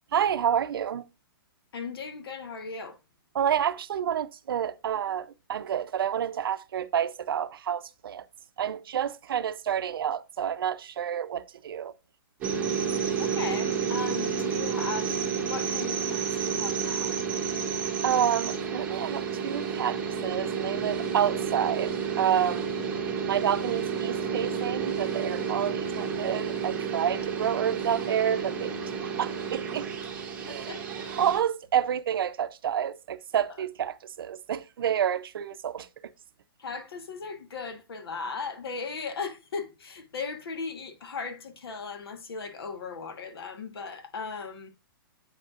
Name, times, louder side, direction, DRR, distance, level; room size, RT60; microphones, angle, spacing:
voice 1, 0.1-1.1 3.3-8.2 8.6-11.9 18.0-22.7 23.3-28.7 29.0-29.9 30.4-30.7 31.2-35.9, right 9 dB, 70° right, 0.5 m, -29 dB
voice 2, 1.7-3.0 13.2-17.2 30.5-30.8 36.6-44.7, left 4 dB, 80° left, 1.3 m, -37 dB
sound 1, 12.4-31.4, right 6 dB, 10° right, 1.4 m, -30 dB
8.0 x 5.3 x 2.4 m
hypercardioid pair, 170°, 12 cm